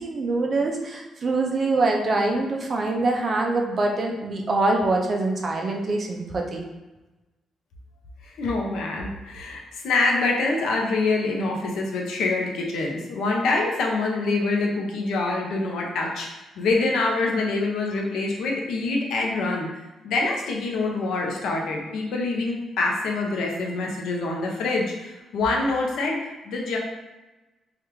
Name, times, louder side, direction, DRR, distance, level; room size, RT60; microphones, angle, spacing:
voice 1, 0.0-6.6, right 2 dB, 35° right, 1 dB, 0.4 m, -24 dB
voice 2, 8.2-16.3 16.6-19.7 20.0-26.8, left 3 dB, 80° left, 0 dB, 0.6 m, -25 dB
3.3 x 2.4 x 3.0 m, 1.1 s
cardioid pair, 160°, 0 cm